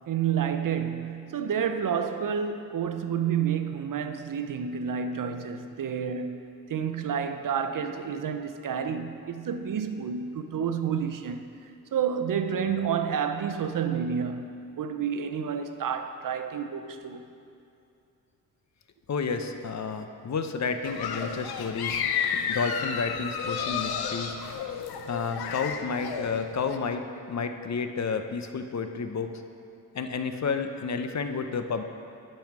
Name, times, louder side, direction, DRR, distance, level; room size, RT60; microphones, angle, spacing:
voice 1, 0.1-17.3, right 7 dB, 60° right, 0.7 m, -30 dB
voice 2, 19.1-22.0 22.5-24.4 25.1-29.3 29.9-31.8, left 5 dB, 50° left, 0.7 m, -31 dB
sound 1, 20.8-26.8, left 7 dB, 90° left, 0.6 m, -32 dB
10.5 x 5.6 x 6.0 m
cardioid pair, 70°, 37 cm